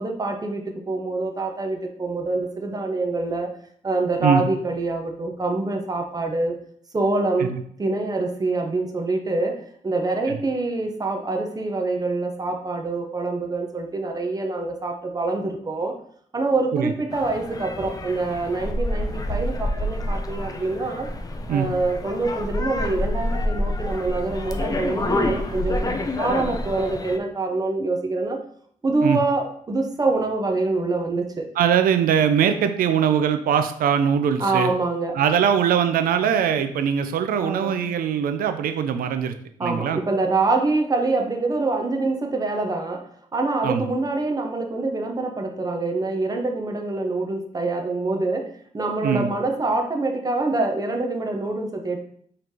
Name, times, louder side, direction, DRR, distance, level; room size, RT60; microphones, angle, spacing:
voice 1, 0.0-3.5 3.8-6.5 6.9-7.5 7.8-15.9 16.3-21.1 21.5-28.4 28.8-31.5 34.4-35.2 37.4-37.8 39.6-52.0, right 3 dB, 25° right, 3 dB, 0.7 m, -25 dB
sound 1, 17.1-27.2, left 1 dB, 25° left, 0.5 m, -28 dB
voice 2, 31.6-34.7 35.1-39.3 39.6-40.0 43.6-43.9 49.0-49.3, right 8 dB, 85° right, 9 dB, 0.4 m, -21 dB
4.0 x 3.2 x 2.8 m, 0.63 s
cardioid pair, 75°, 14 cm